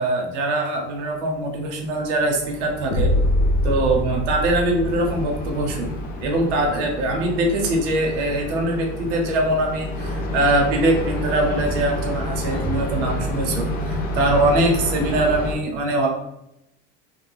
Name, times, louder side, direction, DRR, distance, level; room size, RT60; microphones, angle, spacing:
voice 1, 0.0-3.1 3.6-5.9 6.2-16.1, right 2 dB, 80° right, 2 dB, 0.8 m, -22 dB
sound 1, 1.6-15.5, left 1 dB, 25° left, 0.4 m, -29 dB
sound 2, 2.9-6.9, left 1 dB, 55° left, 0.7 m, -24 dB
2.6 x 2.2 x 3.2 m, 0.83 s
supercardioid pair, 150°, 35 cm